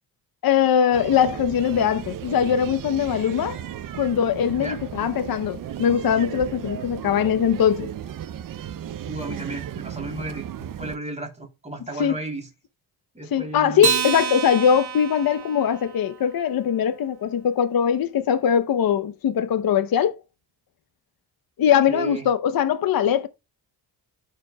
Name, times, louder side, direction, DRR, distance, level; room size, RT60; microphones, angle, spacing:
voice 1, 0.4-3.6 3.9-7.9 12.0-12.1 13.3-20.1 21.6-23.3, left 8 dB, 60° left, 0.8 m, -21 dB
sound 1, 0.9-11.0, right 10 dB, 55° right, 0.6 m, -35 dB
voice 2, 9.0-12.5 13.1-13.8 21.9-22.3, right 2 dB, 15° right, 3.1 m, -34 dB
Acoustic guitar, 13.8-16.5, right 7 dB, 75° right, 2.3 m, -28 dB
12.5 x 5.0 x 2.2 m
cardioid pair, 90°, 40 cm